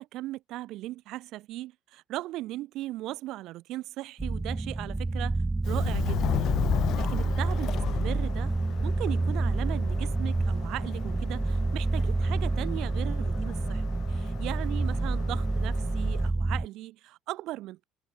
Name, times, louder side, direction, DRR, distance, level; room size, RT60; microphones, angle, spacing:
voice 1, 0.0-5.4 5.7-6.5 6.9-8.5 8.8-17.8, right 16 dB, 70° right, 4.0 m, -38 dB
sound 1, 4.2-16.7, right 2 dB, 15° right, 1.0 m, -28 dB
Subway metro underground, 5.6-16.3, left 13 dB, 65° left, 1.2 m, -36 dB
supercardioid pair, 75°, 0 cm